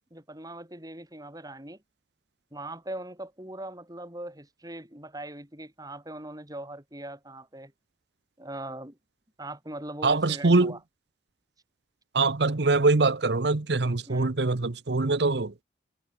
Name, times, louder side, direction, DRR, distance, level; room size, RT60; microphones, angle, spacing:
voice 1, 0.1-1.8 2.5-7.7 8.4-9.0 9.4-10.8 14.1-14.3, right 1 dB, 20° right, 5.5 m, -40 dB
voice 2, 10.0-10.8 12.1-15.6, right 3 dB, 70° right, 0.9 m, -23 dB
head